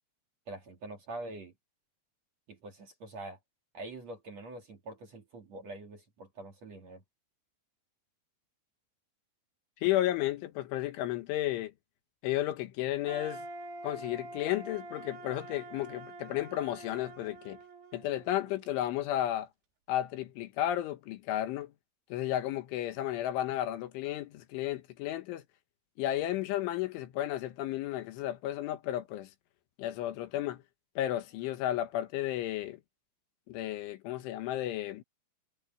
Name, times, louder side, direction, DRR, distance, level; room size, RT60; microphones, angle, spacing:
voice 1, 0.5-1.5 2.5-3.4 3.7-7.0, right 2 dB, 45° right, 2.9 m, -44 dB
voice 2, 9.8-11.7 12.2-13.5 13.8-17.6 17.9-19.5 19.9-21.7 22.1-25.4 26.0-29.3 29.8-30.6 31.0-32.8 33.5-35.0, left 13 dB, 85° left, 3.8 m, -33 dB
sound 1, 13.1-19.0, right 2 dB, 70° right, 5.2 m, -46 dB
omnidirectional pair, 5.5 m